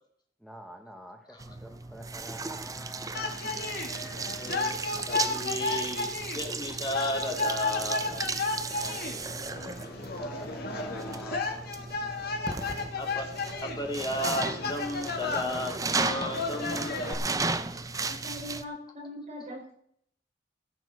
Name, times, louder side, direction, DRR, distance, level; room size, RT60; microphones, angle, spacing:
voice 1, 0.4-3.5 8.8-11.8, equal, ahead, 3 dB, 1.3 m, -48 dB
sound 1, 1.4-18.6, right 3 dB, 20° right, 0.6 m, -35 dB
sound 2, 3.1-17.1, left 3 dB, 60° left, 1.8 m, -33 dB
voice 2, 4.4-8.2 12.0-12.1 12.9-13.3 13.6-17.0, left 1 dB, 25° left, 1 dB, 2.5 m, -34 dB
voice 3, 18.1-19.7, left 1 dB, 40° right, -2 dB, 5.6 m, -41 dB
15.5 x 7.4 x 6.4 m, 0.66 s
head